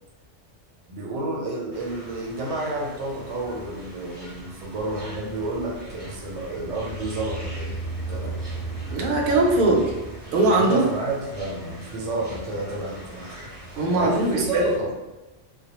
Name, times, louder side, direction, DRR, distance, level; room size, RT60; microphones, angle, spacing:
voice 1, 0.9-7.7 8.1-8.6 10.5-13.5 14.0-14.9, right 2 dB, 85° right, -1 dB, 0.9 m, -30 dB
sound 1, 1.7-14.8, equal, 25° right, 0.6 m, -43 dB
sound 2, 4.2-10.9, right 3 dB, 50° left, 0.5 m, -36 dB
voice 2, 8.9-9.9 10.3-10.8 13.7-14.7, right 2 dB, 65° right, -1 dB, 0.7 m, -20 dB
2.2 x 2.1 x 2.9 m, 1.1 s
omnidirectional pair, 1.2 m